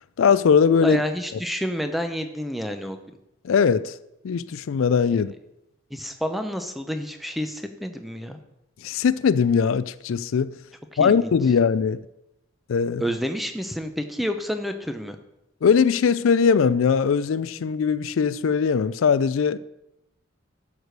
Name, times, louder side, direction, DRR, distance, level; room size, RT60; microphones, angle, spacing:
voice 1, 0.2-1.0 3.4-4.0 4.2-5.3 8.8-10.6 11.0-12.0 12.7-13.0 15.6-19.6, left 6 dB, 80° left, 0.4 m, -20 dB
voice 2, 0.8-3.0 5.1-5.2 5.9-8.4 11.0-11.3 13.0-15.2, equal, ahead, 0.7 m, -29 dB
12.5 x 4.9 x 6.5 m
head